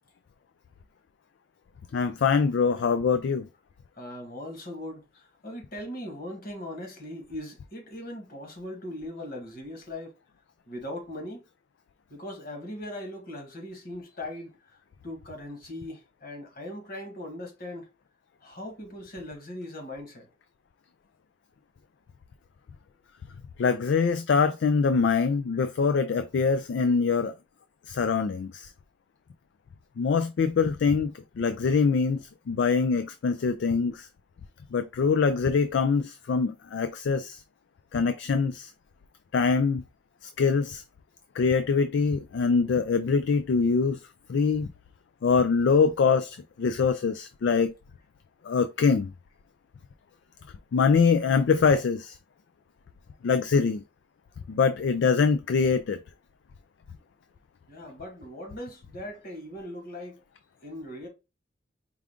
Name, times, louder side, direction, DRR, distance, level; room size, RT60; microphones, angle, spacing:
voice 1, 1.9-3.5 23.6-27.3 27.9-28.7 30.0-31.1 31.4-34.1 34.7-37.4 37.9-38.7 39.3-39.8 40.4-40.8 41.4-44.0 44.3-44.7 45.2-47.7 48.4-49.1 50.7-52.1 53.2-53.8 54.5-56.0, left 5 dB, 70° left, 0.3 m, -24 dB
voice 2, 3.9-10.1 10.7-11.4 12.1-14.5 15.0-17.8 18.4-20.3 57.7-60.2 60.6-61.1, left 1 dB, 50° left, 1.6 m, -39 dB
4.7 x 2.5 x 3.5 m
head